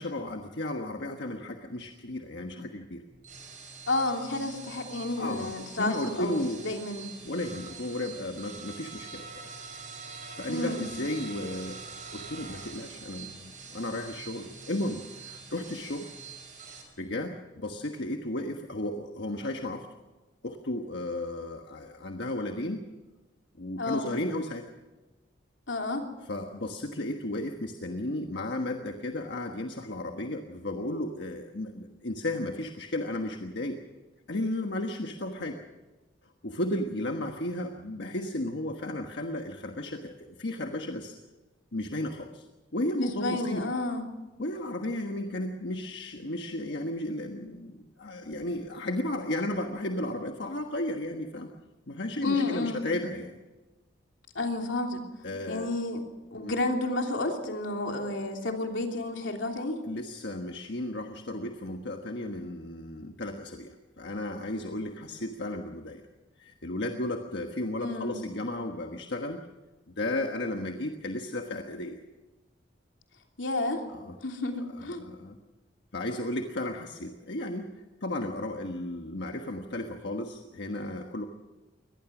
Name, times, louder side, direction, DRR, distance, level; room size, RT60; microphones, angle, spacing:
voice 1, 0.0-3.0 5.2-6.6 7.2-9.6 10.4-11.8 12.1-16.1 17.0-19.9 20.4-22.8 23.6-24.6 26.3-33.8 34.3-35.6 36.4-41.2 41.7-42.5 42.7-43.6 44.4-51.5 51.9-53.4 55.2-55.7 56.3-56.5 59.8-66.0 66.4-69.4 69.9-72.0 73.9-74.2 74.8-75.4 75.9-81.2, left 1 dB, 65° left, 3 dB, 1.4 m, -34 dB
sound 1, 3.1-16.8, right 5 dB, 45° right, 5.6 m, -45 dB
voice 2, 3.9-7.1 10.5-10.9 23.8-24.1 25.7-26.0 43.0-44.1 52.2-52.8 54.3-55.0 55.5-56.0 56.3-59.8 67.8-68.2 73.4-73.8 74.2-75.0, left 2 dB, 90° left, 3 dB, 3.1 m, -31 dB
23.5 x 19.0 x 6.1 m, 1.2 s
head